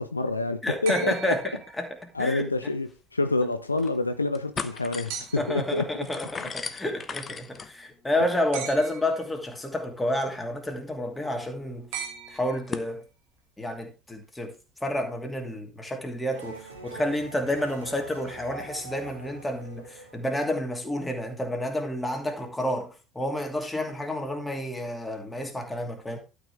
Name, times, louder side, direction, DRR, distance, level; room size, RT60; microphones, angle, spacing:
voice 1, 0.0-1.4 2.1-5.8, left 2 dB, 90° left, 0.6 m, -27 dB
voice 2, 0.6-2.4 5.4-11.9 12.3-13.0 13.6-14.5 14.8-26.2, left 1 dB, 10° left, 2.6 m, -30 dB
sound 1, 0.9-2.2 5.1-5.7 8.5-9.3 11.9-13.0 14.5-14.6, right 7 dB, 60° right, 1.6 m, -39 dB
sound 2, 2.5-2.6 2.9-3.0 3.5-4.0 4.3-12.9, left 5 dB, 30° left, 1.0 m, -41 dB
sound 3, 16.3-21.0, right 3 dB, 85° right, 2.1 m, -44 dB
12.0 x 5.4 x 4.7 m
figure-of-eight pair, 65°, 0 cm